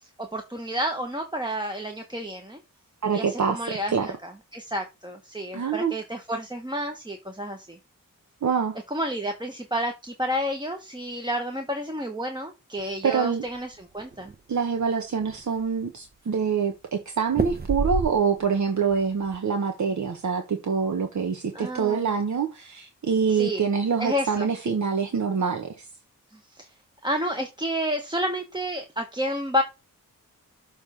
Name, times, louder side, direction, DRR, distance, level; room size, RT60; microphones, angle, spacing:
voice 1, 0.2-2.6 3.1-7.8 8.9-14.3 21.5-22.1 23.3-23.7 24.0-24.5 26.5-26.7 27.0-29.6, equal, 15° right, 1.2 m, -30 dB
voice 2, 3.0-3.6 3.9-4.1 5.5-5.9 8.4-8.8 12.8-13.4 14.5-25.9, right 6 dB, 60° right, 1.4 m, -25 dB
sound 1, 13.4-14.3 14.8-14.9 15.2-15.8 17.3-18.6 18.9-19.4, right 3 dB, 30° right, 0.8 m, -29 dB
7.1 x 3.5 x 5.7 m
cardioid pair, 80°, 33 cm